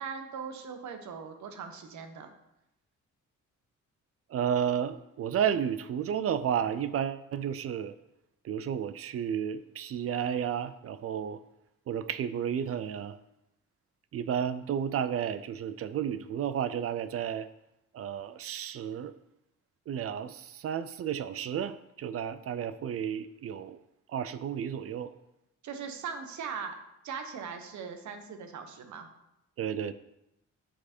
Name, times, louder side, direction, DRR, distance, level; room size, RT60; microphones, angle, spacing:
voice 1, 0.0-2.3 25.6-26.8 27.0-29.1, right 6 dB, 70° right, 6 dB, 1.1 m, -40 dB
voice 2, 4.3-7.9 8.4-11.4 11.9-13.2 14.1-17.5 17.9-19.1 19.9-23.8 24.1-25.1 29.6-29.9, right 8 dB, 50° right, 13 dB, 0.4 m, -32 dB
7.1 x 4.7 x 4.4 m, 0.86 s
cardioid pair, 90°, 30 cm